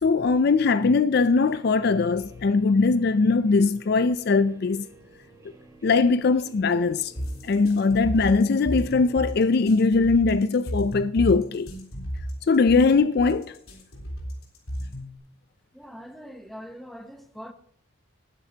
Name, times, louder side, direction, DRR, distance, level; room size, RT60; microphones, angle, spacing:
voice 1, 0.0-4.9 5.8-7.1 7.4-11.7 12.5-13.6, left 4 dB, 50° left, 0.4 m, -21 dB
Guitar, 1.4-9.3, right 2 dB, 15° right, 2.8 m, -53 dB
sound 1, 7.2-15.2, equal, 85° left, 3.6 m, -33 dB
voice 2, 15.7-17.5, equal, ahead, 0.9 m, -42 dB
19.0 x 9.3 x 2.8 m
head